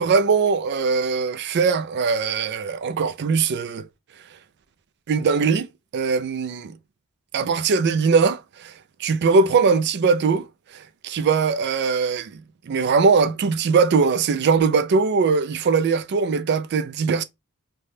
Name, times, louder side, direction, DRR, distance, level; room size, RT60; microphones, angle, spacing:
voice 1, 0.0-3.9 5.1-5.7 5.9-6.8 7.3-8.7 9.0-10.5 10.7-12.4 12.7-17.2, right 5 dB, 50° right, 0.4 m, -21 dB
3.3 x 2.2 x 2.6 m
head